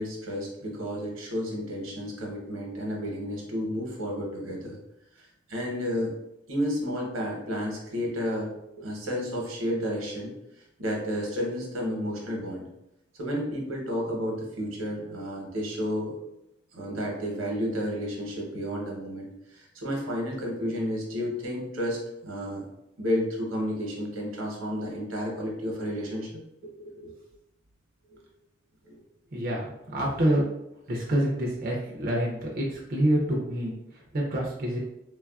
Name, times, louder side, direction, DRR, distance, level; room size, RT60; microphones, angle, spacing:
voice 1, 0.0-4.8 5.2-6.1 6.5-10.3 10.8-12.7 13.2-16.2 16.7-22.6 23.0-26.3 26.6-27.1 28.1-28.2 28.8-29.0, equal, 90° right, -1 dB, 0.9 m, -31 dB
voice 2, 29.3-30.4 30.9-34.8, right 1 dB, 45° right, -3 dB, 0.4 m, -27 dB
3.2 x 2.3 x 2.3 m, 0.87 s
head